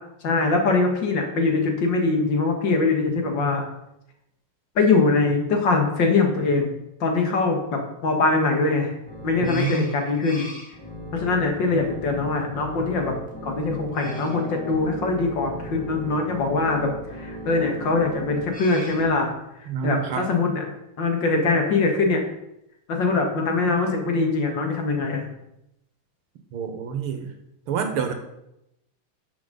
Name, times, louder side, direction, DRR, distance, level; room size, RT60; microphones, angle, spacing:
voice 1, 0.2-3.6 4.8-6.7 7.0-8.9 9.2-10.5 11.1-13.1 13.4-19.3 19.6-20.6 21.0-22.2 22.9-25.3, left 3 dB, 60° left, 3 dB, 2.2 m, -22 dB
sound 1, 9.1-19.1, right 1 dB, 5° left, 1.9 m, -37 dB
voice 2, 9.4-9.9 19.7-20.3 26.5-27.3 27.7-28.1, right 7 dB, 75° right, 6 dB, 2.1 m, -27 dB
12.0 x 7.4 x 4.0 m, 0.84 s
omnidirectional pair, 2.4 m